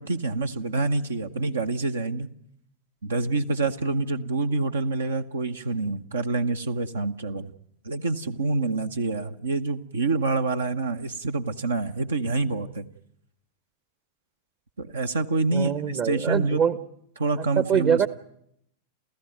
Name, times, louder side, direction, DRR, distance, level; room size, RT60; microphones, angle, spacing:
voice 1, 0.0-2.3 3.0-7.5 7.8-12.9 14.8-16.6 17.2-18.0, right 3 dB, 70° right, 7 dB, 0.9 m, -27 dB
voice 2, 15.5-16.8 17.6-18.1, right 8 dB, 35° right, 15 dB, 0.9 m, -23 dB
30.0 x 14.5 x 9.2 m, 0.73 s
figure-of-eight pair, 90°, 0 cm